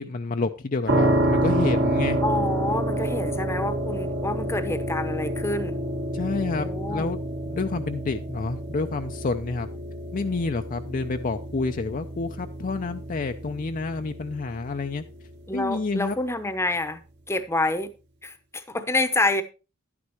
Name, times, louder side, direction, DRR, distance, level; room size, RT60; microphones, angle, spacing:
voice 1, 0.0-2.2 6.1-7.2 7.5-9.7 10.1-15.0 15.5-16.2, left 3 dB, 40° left, 0.5 m, -29 dB
sound 1, 0.9-15.7, right 1 dB, 55° right, 1.3 m, -28 dB
voice 2, 2.2-5.8 6.6-7.1 15.5-17.0 17.3-17.9 18.2-19.4, left 2 dB, 15° left, 0.8 m, -27 dB
11.0 x 9.6 x 3.0 m
head